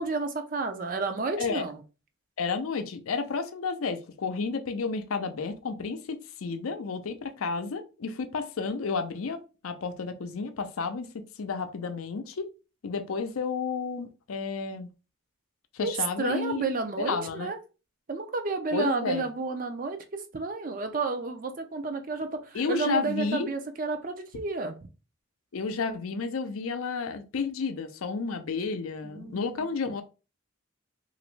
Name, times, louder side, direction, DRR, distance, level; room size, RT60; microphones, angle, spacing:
voice 1, 0.0-1.8 15.8-17.6 18.1-20.0 20.3-24.8 29.0-29.7, right 3 dB, 40° right, 0.5 m, -31 dB
voice 2, 2.4-12.5 12.8-14.9 15.7-16.6 17.0-17.5 18.7-19.2 22.5-23.5 25.5-30.0, left 4 dB, 85° left, 0.5 m, -31 dB
2.9 x 2.5 x 3.1 m
head